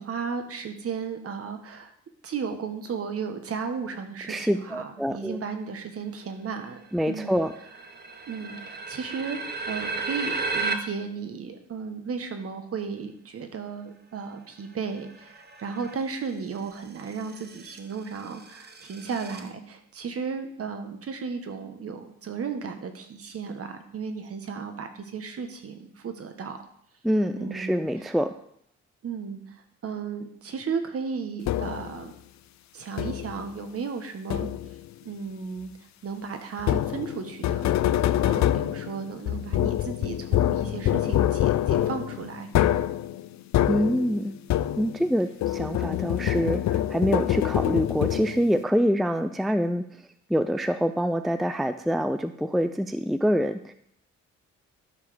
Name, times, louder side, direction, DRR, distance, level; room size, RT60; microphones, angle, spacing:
voice 1, 0.0-1.9 2.2-7.4 8.3-26.6 27.3-27.9 29.0-32.1 32.7-34.5 35.0-35.7 36.0-37.7 38.2-42.5, right 5 dB, 50° right, 7 dB, 1.4 m, -34 dB
voice 2, 4.3-5.4 6.9-7.5 27.0-28.3 43.7-44.4 44.8-49.9 50.3-53.7, equal, ahead, 10 dB, 0.4 m, -25 dB
sound 1, 6.7-6.8 7.0-10.7 15.0-15.9 16.8-19.5, right 4 dB, 35° right, 1.1 m, -34 dB
sound 2, 31.5-32.0 33.0-33.4 34.3-34.9 36.6-45.1 45.4-48.6, left 12 dB, 65° left, 0.5 m, -25 dB
12.0 x 4.9 x 5.1 m, 0.69 s
cardioid pair, 90°, 30 cm